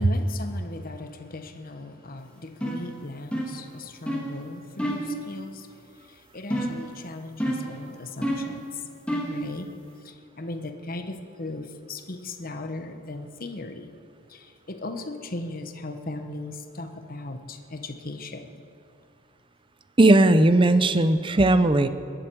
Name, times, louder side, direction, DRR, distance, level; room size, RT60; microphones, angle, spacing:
voice 1, 0.0-8.8 9.3-9.7 10.0-14.0 14.3-18.6, left 2 dB, 45° left, 7 dB, 1.0 m, -38 dB
sound 1, 2.6-2.9 3.3-3.6 4.1-4.3 4.8-5.1 6.5-6.9 7.4-7.8 8.2-8.6 9.1-9.4, equal, 5° left, 1.9 m, -28 dB
voice 2, 20.0-21.9, right 2 dB, 25° right, 11 dB, 0.6 m, -17 dB
21.5 x 10.5 x 4.7 m, 2.5 s
head